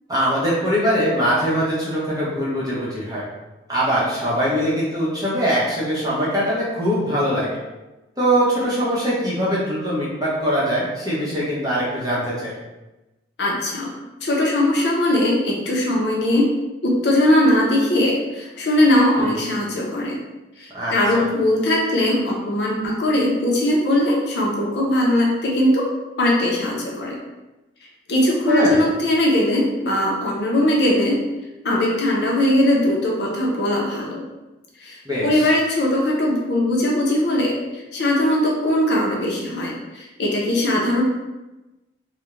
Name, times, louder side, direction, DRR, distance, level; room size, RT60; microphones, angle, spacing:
voice 1, 0.1-3.3 3.7-7.5 8.2-12.5 19.1-19.3 20.7-21.2 28.5-28.8 35.0-35.5, equal, 20° right, -8 dB, 0.7 m, -22 dB
voice 2, 13.4-13.9 14.2-16.4 16.8-20.2 20.6-25.8 26.2-27.2 28.1-31.2 31.6-34.2 34.8-41.0, left 1 dB, 65° left, -2 dB, 0.5 m, -20 dB
2.4 x 2.1 x 3.0 m, 1.1 s
head